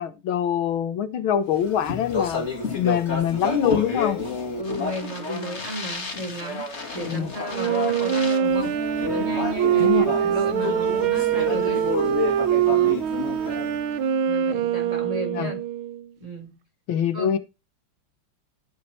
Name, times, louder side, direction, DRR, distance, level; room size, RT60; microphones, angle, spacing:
voice 1, 0.0-2.5 2.8-4.2 7.1-7.3 9.8-10.1 15.3-15.5 16.9-17.4, left 9 dB, 80° left, 1.8 m, -24 dB
Speech, 1.6-14.0, left 3 dB, 35° left, 2.4 m, -30 dB
voice 2, 4.6-8.8 9.1-11.8 12.6-13.0 14.2-15.6 16.2-16.6 17.1-17.4, equal, 15° right, 3.8 m, -34 dB
Wind instrument woodwind instrument, 7.5-16.1, right 9 dB, 85° right, 1.8 m, -23 dB
Wind instrument woodwind instrument 2, 8.7-14.3, left 3 dB, ahead, 1.8 m, -38 dB
13.5 x 5.8 x 4.3 m
omnidirectional pair, 2.2 m